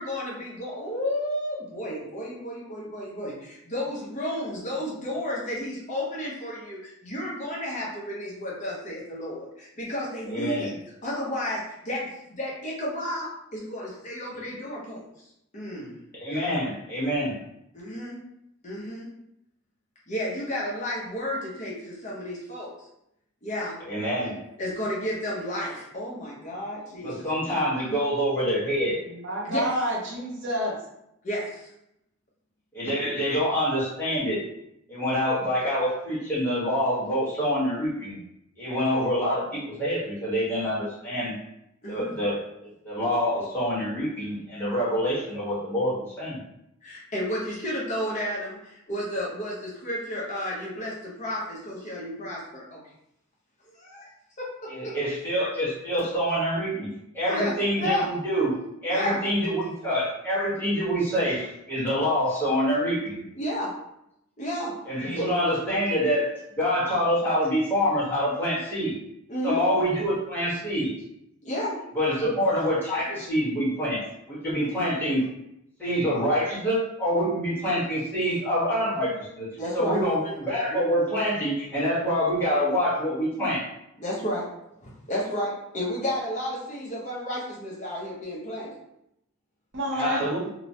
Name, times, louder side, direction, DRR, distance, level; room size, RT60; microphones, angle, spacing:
voice 1, 0.0-10.7 11.0-15.0 15.5-16.0 17.7-18.2 18.6-19.1 20.1-22.7 23.4-23.8 24.6-27.3 29.4-29.7 31.2-31.7 41.8-42.1 46.8-52.8 53.7-54.1 54.4-55.0 57.3-58.1 58.9-59.2 63.4-63.8 64.4-64.8 65.1-65.3 69.3-69.6 71.4-71.8 72.2-72.3 74.6-74.7 78.2-78.3 79.6-80.0 84.0-84.5 84.8-88.8, equal, 35° left, -5 dB, 0.7 m, -32 dB
voice 2, 10.3-10.7 14.3-14.4 16.1-17.4 23.9-24.4 27.0-29.0 32.7-34.4 34.9-38.2 38.6-41.3 41.9-46.4 54.7-56.9 57.1-58.5 58.8-63.2 64.9-69.0 69.4-70.9 71.9-75.2 75.8-79.5 79.7-83.7 89.9-90.5, equal, 10° left, -9 dB, 1.1 m, -26 dB
voice 3, 29.1-30.8 89.7-90.2, equal, 60° right, -2 dB, 0.7 m, -28 dB
2.9 x 2.0 x 2.7 m, 0.80 s
head